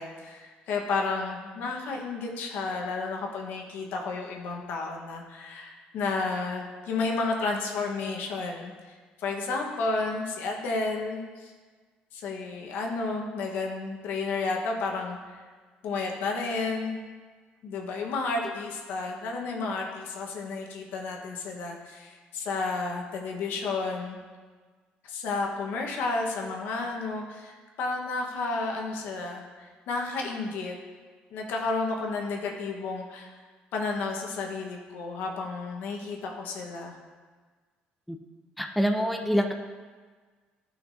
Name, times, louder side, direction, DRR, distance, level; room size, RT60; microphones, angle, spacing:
voice 1, 0.0-11.5 12.1-15.4 15.8-17.0 17.6-24.2 25.0-30.8 31.3-33.4 33.7-37.0, left 3 dB, 75° left, 0 dB, 1.3 m, -32 dB
voice 2, 38.6-39.5, equal, ahead, 4 dB, 0.5 m, -25 dB
12.0 x 5.8 x 2.7 m, 1.4 s
cardioid pair, 110°, 3 cm